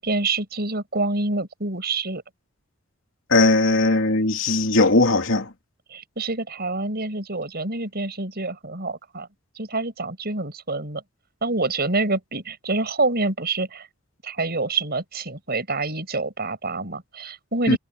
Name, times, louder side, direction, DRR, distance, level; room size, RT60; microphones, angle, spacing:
voice 1, 0.0-2.2 5.9-9.3 9.6-11.0 11.4-13.9 14.2-17.8, right 3 dB, 50° right, 7.1 m, -27 dB
voice 2, 3.3-5.5 17.7-17.8, left 2 dB, 70° left, 2.8 m, -18 dB
head